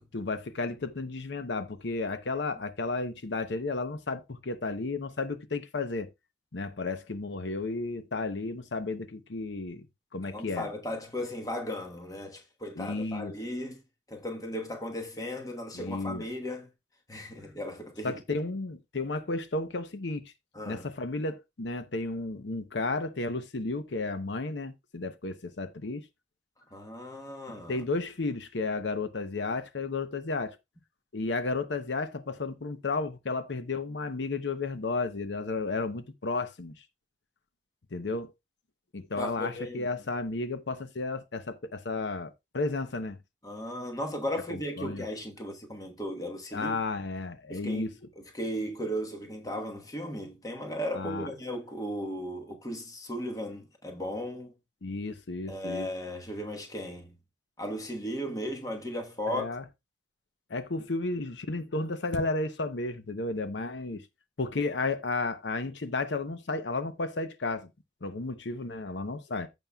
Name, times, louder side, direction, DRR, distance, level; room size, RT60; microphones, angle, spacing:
voice 1, 0.1-6.1 6.5-9.9 10.1-10.7 12.8-13.3 15.7-16.2 18.0-20.2 20.6-26.0 27.7-30.6 31.1-36.8 37.9-38.3 38.9-43.2 44.5-45.0 46.5-47.9 50.9-51.3 54.8-55.9 59.3-59.6 60.5-64.0 64.4-67.7 68.0-69.5, left 3 dB, 85° left, 0.8 m, -33 dB
voice 2, 10.3-13.8 14.1-16.7 17.1-18.4 20.5-20.9 26.7-27.8 39.2-39.9 43.4-46.8 47.5-54.5 55.5-57.1 57.6-59.5, equal, 20° left, 1.2 m, -36 dB
14.5 x 5.4 x 2.3 m
head